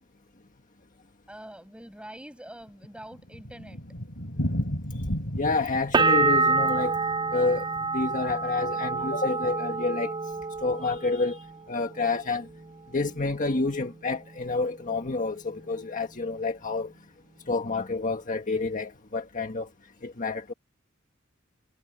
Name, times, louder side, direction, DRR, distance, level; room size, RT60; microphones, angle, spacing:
voice 1, 1.3-3.8, right 1 dB, 5° right, 7.8 m, -44 dB
Thunder, 2.5-8.8 9.0-9.1 9.4-9.5 9.7-9.8 10.4-10.7, equal, 60° left, 4.0 m, -35 dB
voice 2, 5.4-6.9 7.3-7.7 7.9-10.1 10.6-12.5 12.9-16.9 17.5-19.7 20.0-20.5, left 3 dB, 40° left, 1.6 m, -28 dB
sound 1, 5.9-11.6 11.9-12.6, right 3 dB, 20° right, 0.4 m, -27 dB
head